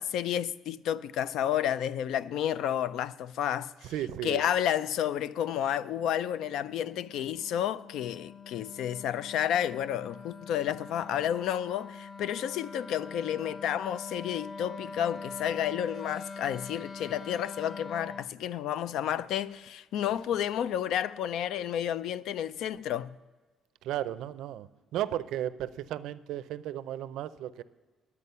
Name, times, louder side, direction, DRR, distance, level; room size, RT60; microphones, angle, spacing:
voice 1, 0.0-3.9 4.2-23.1, left 10 dB, 75° left, 0.3 m, -31 dB
voice 2, 3.8-4.4 23.8-27.6, right 12 dB, 80° right, 0.4 m, -35 dB
Wind instrument woodwind instrument, 5.4-18.3, left 4 dB, 20° left, 0.5 m, -44 dB
10.5 x 8.5 x 5.5 m
cardioid pair, 160°, 0 cm